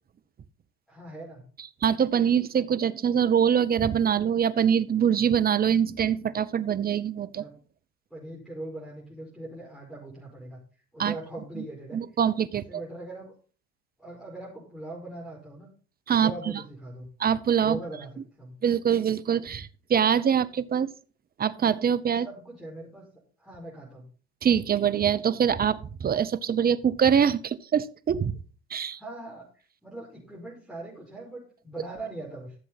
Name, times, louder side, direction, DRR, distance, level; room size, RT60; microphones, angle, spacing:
voice 1, 0.9-1.4 7.3-7.5 8.1-10.6 10.9-12.0 12.7-13.3 14.0-15.7 16.2-17.1 17.6-18.5 22.2-23.0 23.4-24.1 29.0-32.6, right 2 dB, ahead, -7 dB, 5.2 m, -41 dB
voice 2, 1.8-7.5 11.0-11.1 11.6-11.7 11.9-12.6 16.1-16.3 17.2-17.8 18.6-20.9 21.4-22.3 24.4-28.4 28.7-29.0, right 8 dB, 30° right, 15 dB, 0.9 m, -24 dB
14.0 x 7.5 x 4.1 m, 0.38 s
hypercardioid pair, 80°, 33 cm